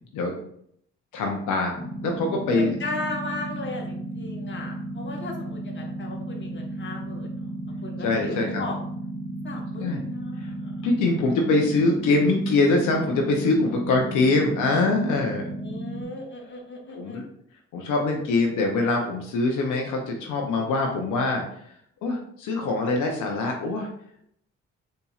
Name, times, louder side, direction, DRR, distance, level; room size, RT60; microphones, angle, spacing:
voice 1, 1.1-2.7 8.0-8.6 9.8-10.0 10.4-10.5 10.8-15.5 16.9-17.2 17.7-21.4 22.0-23.9, left 3 dB, 85° left, 1 dB, 0.6 m, -24 dB
sound 1, 1.8-16.0, right 1 dB, 15° left, 1.3 m, -34 dB
voice 2, 2.5-7.3 7.8-8.8 9.4-10.7 15.6-17.2, left 2 dB, 40° left, 1 dB, 1.0 m, -36 dB
4.1 x 2.7 x 2.3 m, 0.68 s
supercardioid pair, 55°, 30 cm